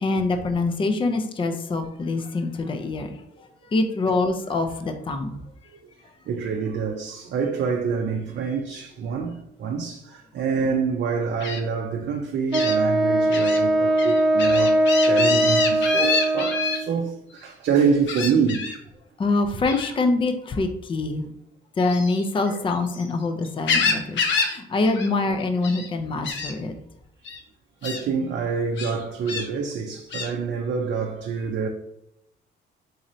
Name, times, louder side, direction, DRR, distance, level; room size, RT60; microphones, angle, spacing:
voice 1, 0.0-5.4 13.8-13.9 19.2-21.3 21.8-26.8, left 3 dB, 25° left, 0.4 m, -25 dB
voice 2, 6.3-18.8 22.5-22.6 27.8-31.7, right 5 dB, 60° right, 0.5 m, -26 dB
Gull seagull, 11.4-11.6 12.5-12.8 13.3-13.6 14.0-16.8 18.1-18.8 19.7-19.9 21.8-23.1 23.4-24.6 24.8-25.1 25.4-25.9 26.2-26.5 27.2-27.4 27.8-28.0 28.8-29.5 30.1-30.3, left 5 dB, 70° left, 0.7 m, -27 dB
Wind instrument woodwind instrument, 12.5-16.9, right 1 dB, 25° right, 0.9 m, -20 dB
4.0 x 3.0 x 2.6 m
cardioid pair, 90°, 20 cm